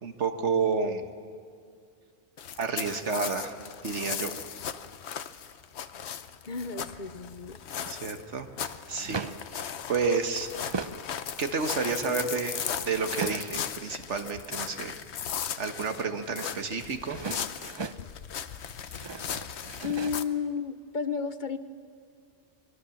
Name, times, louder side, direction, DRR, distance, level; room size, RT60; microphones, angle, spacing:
voice 1, 0.0-1.0 2.6-3.5 3.8-4.3 7.9-9.3 9.6-10.5 11.4-15.0 15.6-17.2, right 5 dB, 85° right, 7 dB, 1.7 m, -30 dB
sound 1, 2.4-20.2, left 8 dB, 70° left, 1.1 m, -37 dB
voice 2, 6.4-7.6 19.8-21.6, left 6 dB, 45° left, 11 dB, 0.9 m, -32 dB
sound 2, 7.4-7.9 8.8-9.6 10.1-11.1 11.5-13.8 16.8-18.1 18.7-20.2, right 4 dB, 30° right, 0.5 m, -38 dB
23.5 x 21.5 x 7.1 m, 2.2 s
omnidirectional pair, 1.2 m